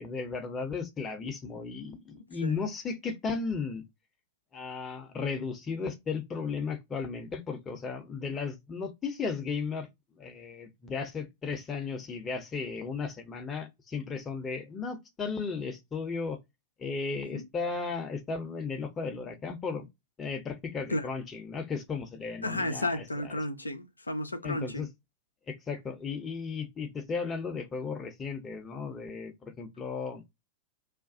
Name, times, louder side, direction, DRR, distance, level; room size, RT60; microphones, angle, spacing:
voice 1, 0.0-3.8 4.5-9.9 10.2-16.4 16.8-19.9 20.2-23.0 24.4-24.9 25.5-30.2, left 5 dB, 20° left, 0.7 m, -35 dB
voice 2, 22.4-24.9, left 1 dB, 80° left, 0.4 m, -33 dB
2.4 x 2.2 x 2.4 m
figure-of-eight pair, 90°, 0 cm